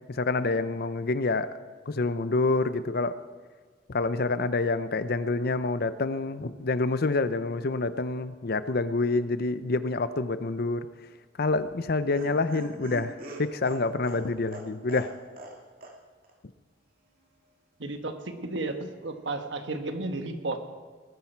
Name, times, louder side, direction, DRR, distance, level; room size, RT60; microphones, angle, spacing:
voice 1, 0.1-1.6 1.9-3.2 3.9-10.9 11.4-15.1, left 3 dB, 55° left, 13 dB, 0.7 m, -27 dB
Laughter, 11.5-15.6 15.8-15.9 16.2-16.3, right 2 dB, 50° right, 2.2 m, -42 dB
voice 2, 17.8-20.6, right 2 dB, 75° right, 6 dB, 1.4 m, -33 dB
20.0 x 10.0 x 4.6 m, 1.5 s
head